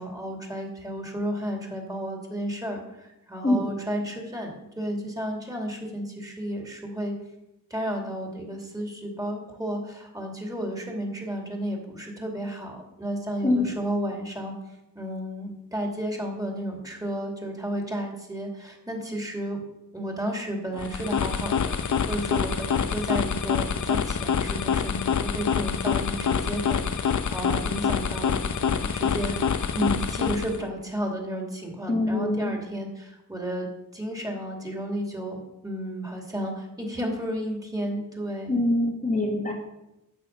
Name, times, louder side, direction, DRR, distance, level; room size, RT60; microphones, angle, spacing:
voice 1, 0.0-7.1 7.7-14.5 14.9-19.6 19.9-29.4 29.8-33.7 33.9-38.6, right 1 dB, 10° right, 0 dB, 2.7 m, -32 dB
sound 1, 20.7-30.7, left 7 dB, 60° left, 0.8 m, -26 dB
voice 2, 31.9-32.5 38.5-39.5, left 1 dB, 25° left, -1 dB, 1.6 m, -24 dB
13.0 x 9.3 x 5.5 m, 0.91 s
wide cardioid pair, 170°, 34 cm